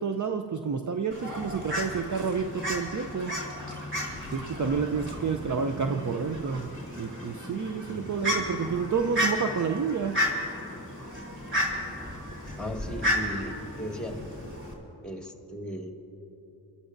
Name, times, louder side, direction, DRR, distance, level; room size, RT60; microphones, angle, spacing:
voice 1, 0.0-3.4 4.3-10.2, right 5 dB, 40° right, 6 dB, 0.6 m, -29 dB
Fowl, 1.1-14.7, equal, 25° right, 3.2 m, -33 dB
voice 2, 12.6-14.2 15.0-15.9, equal, ahead, 0 dB, 2.0 m, -36 dB
28.0 x 13.0 x 2.6 m, 3.0 s
cardioid pair, 45°, 45 cm